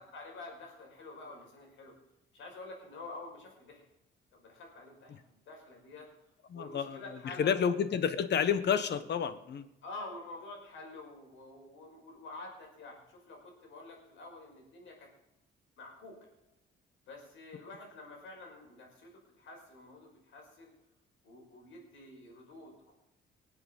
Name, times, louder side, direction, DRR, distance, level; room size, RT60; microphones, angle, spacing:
voice 1, 0.0-1.9 2.3-3.9 4.3-6.1 6.5-7.7 9.8-15.1 15.8-16.3 17.1-20.7 21.2-22.9, left 2 dB, 75° left, 1 dB, 5.5 m, -48 dB
voice 2, 6.5-9.7, left 7 dB, 60° left, 13 dB, 1.3 m, -30 dB
20.5 x 8.1 x 5.5 m, 0.90 s
cardioid pair, 90°, 20 cm